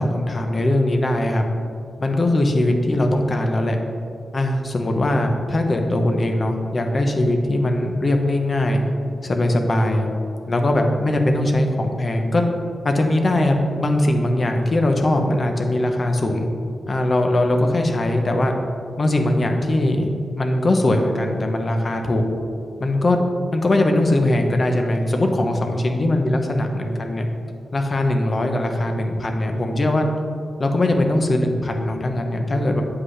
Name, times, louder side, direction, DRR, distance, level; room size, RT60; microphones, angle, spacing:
voice 1, 0.0-1.5 2.0-3.8 4.3-8.8 9.2-10.1 10.5-12.5 12.8-16.5 16.9-18.5 19.0-22.2 22.8-27.3 27.7-30.1 30.6-32.8, left 1 dB, 30° left, 4 dB, 0.7 m, -20 dB
8.0 x 7.7 x 3.3 m, 2.4 s
wide cardioid pair, 165°, 0 cm